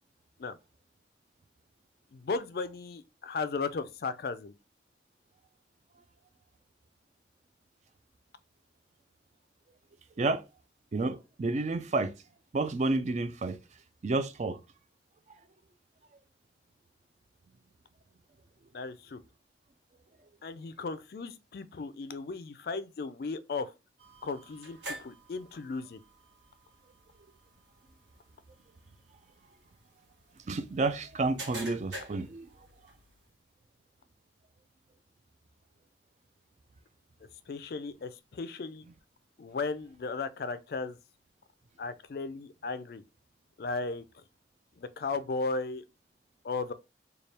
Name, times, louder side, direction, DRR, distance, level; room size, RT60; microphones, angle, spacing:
voice 1, 2.1-4.5 18.7-19.2 20.4-23.7 24.2-26.0 37.5-38.9 39.4-41.0 41.8-43.0 43.6-44.0 44.8-45.8 46.4-46.7, left 4 dB, 55° left, 0.4 m, -36 dB
voice 2, 10.9-12.1 12.5-13.6 14.0-14.6 30.5-32.5, right 3 dB, 40° right, 0.4 m, -30 dB
sound 1, 24.0-33.3, right 1 dB, 75° right, 1.3 m, -48 dB
3.3 x 2.3 x 4.2 m
head